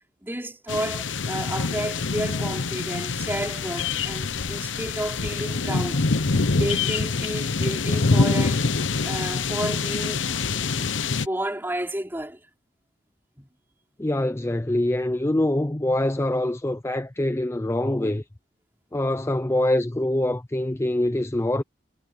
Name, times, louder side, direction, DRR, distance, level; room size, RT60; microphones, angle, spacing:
voice 1, 0.2-6.0 6.6-8.7 9.0-10.2 10.5-12.4 13.4-13.5, right 1 dB, 10° right, 5.3 m, -31 dB
sound 1, 0.7-11.3, left 4 dB, 90° left, 0.9 m, -25 dB
voice 2, 14.0-18.2 18.9-21.6, left 1 dB, 15° left, 0.5 m, -24 dB
head